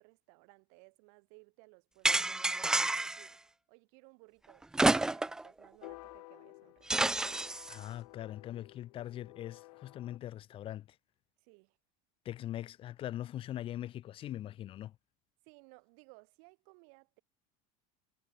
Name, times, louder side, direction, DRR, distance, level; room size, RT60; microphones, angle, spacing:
voice 1, 0.0-3.4 3.7-7.2 11.4-11.8 15.4-17.2, right 40 dB or more, 55° right, 7.4 m, -60 dB
sound 1, 2.0-3.3 4.7-5.5 5.8-5.9 6.9-7.7, right 2 dB, 5° right, 0.3 m, -29 dB
sound 2, 5.8-10.2, left 21 dB, 80° left, 1.7 m, -53 dB
voice 2, 7.7-11.0 12.3-14.9, left 12 dB, 30° left, 1.7 m, -41 dB
cardioid pair, 175°, 19 cm